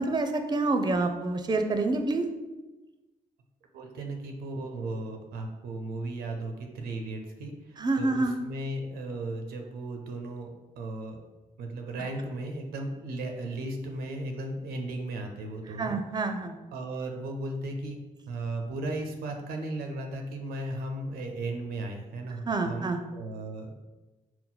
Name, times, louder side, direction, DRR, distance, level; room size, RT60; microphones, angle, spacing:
voice 1, 0.0-2.2 7.8-8.3 15.8-16.6 22.5-23.0, right 3 dB, 25° right, 6 dB, 0.5 m, -27 dB
voice 2, 3.7-11.2 11.6-16.0 16.7-18.0 18.3-23.8, right 2 dB, 90° right, 3 dB, 0.5 m, -36 dB
4.1 x 2.1 x 3.8 m, 1.1 s
supercardioid pair, 50°, 16 cm